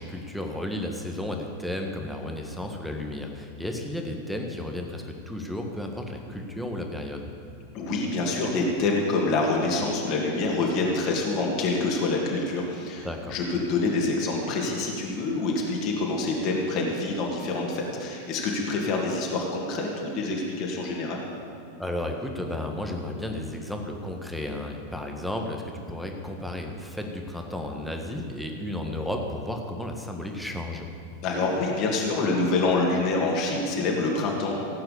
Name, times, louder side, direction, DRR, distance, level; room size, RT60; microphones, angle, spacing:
voice 1, 0.0-7.3 13.0-13.3 21.8-30.9, left 1 dB, ahead, 2 dB, 1.6 m, -33 dB
voice 2, 7.7-13.0 13.3-21.2 31.2-34.5, left 3 dB, 40° left, -1 dB, 2.6 m, -26 dB
16.5 x 8.7 x 7.1 m, 2.6 s
figure-of-eight pair, 90°, 0 cm